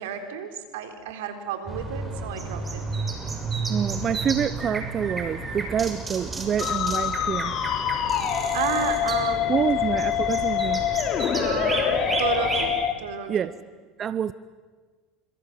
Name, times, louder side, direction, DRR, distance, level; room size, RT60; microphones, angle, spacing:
voice 1, 0.0-2.9 8.5-9.7 11.3-13.5, right 8 dB, 80° right, 6 dB, 4.0 m, -32 dB
sound 1, 1.7-12.7, right 3 dB, 20° right, 6.9 m, -32 dB
voice 2, 3.7-7.5 9.5-10.9 13.3-13.5 14.0-14.3, right 8 dB, 40° right, 15 dB, 0.8 m, -27 dB
Musical instrument, 6.6-12.9, left 9 dB, 45° left, 3.3 m, -25 dB
27.0 x 25.5 x 7.7 m, 1.4 s
supercardioid pair, 95°, 0 cm